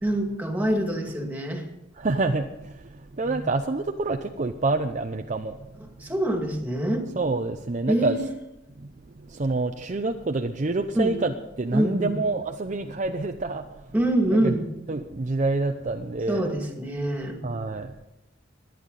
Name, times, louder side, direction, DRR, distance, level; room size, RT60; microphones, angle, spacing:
voice 1, 0.0-1.7 3.2-3.4 6.0-7.1 7.9-8.2 10.9-11.2 11.7-12.1 13.9-14.7 16.3-17.4, right 1 dB, 10° right, 2 dB, 2.3 m, -25 dB
voice 2, 1.9-5.6 7.2-8.2 8.8-13.9 14.3-14.5 14.9-16.5 17.4-18.0, right 3 dB, 40° right, 5 dB, 0.6 m, -27 dB
22.0 x 9.3 x 4.1 m, 0.93 s
head